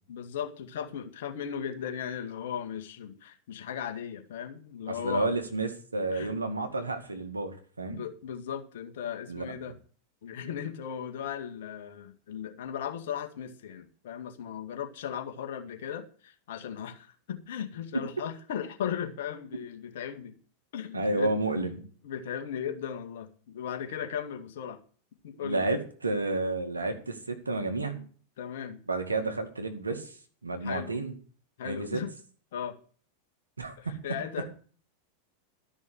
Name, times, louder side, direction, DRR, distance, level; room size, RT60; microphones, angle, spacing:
voice 1, 0.1-5.3 6.1-6.3 7.9-9.7 10.2-20.4 20.7-21.7 22.0-24.8 25.2-25.7 27.9-28.1 28.4-28.8 29.2-29.3 30.6-31.0 31.6-32.1 32.5-32.8 33.8-34.6, left 8 dB, 65° left, 5 dB, 2.0 m, -37 dB
voice 2, 4.9-8.0 9.3-9.5 20.9-21.8 25.4-28.0 28.9-30.2 30.4-31.1 31.6-32.0 33.6-34.0, right 2 dB, 90° right, 6 dB, 2.1 m, -31 dB
13.0 x 6.2 x 8.1 m, 0.43 s
figure-of-eight pair, 90°, 0 cm